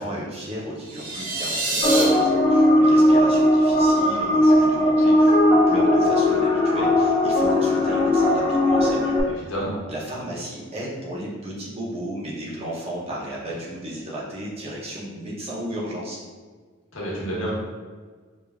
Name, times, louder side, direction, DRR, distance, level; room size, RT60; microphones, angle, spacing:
voice 1, 0.0-9.1 9.9-16.2, right 1 dB, 30° right, -5 dB, 0.7 m, -34 dB
sound 1, 0.8-2.0, right 2 dB, 70° right, 0.9 m, -26 dB
sound 2, 1.8-9.2, left 1 dB, 65° left, 0.8 m, -18 dB
voice 2, 9.3-9.8 16.9-17.5, right 1 dB, 85° left, -5 dB, 1.1 m, -29 dB
4.9 x 2.4 x 2.3 m, 1.5 s
head